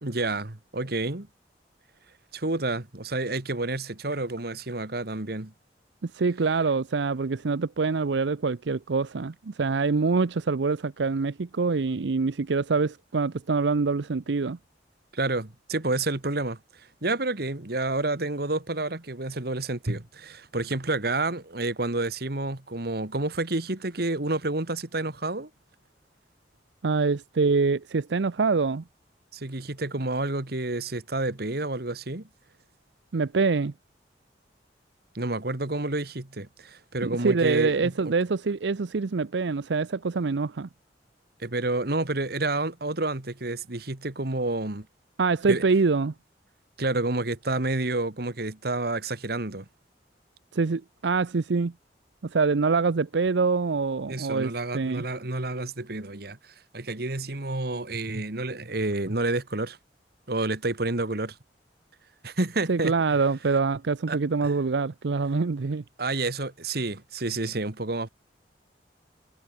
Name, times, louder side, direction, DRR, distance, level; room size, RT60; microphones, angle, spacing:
voice 1, 0.0-1.3 2.3-5.5 15.1-16.6 17.0-25.5 29.3-32.3 35.2-38.1 41.4-44.9 45.5-45.6 46.8-49.7 54.1-56.4 56.7-59.8 60.3-61.4 62.2-62.9 64.1-64.5 66.0-68.1, right 2 dB, 60° right, 1.8 m, -29 dB
voice 2, 6.0-14.6 26.8-28.8 33.1-33.7 37.0-40.7 45.2-46.1 50.5-51.7 52.2-55.0 62.7-65.8, right 4 dB, 80° right, 0.6 m, -25 dB
head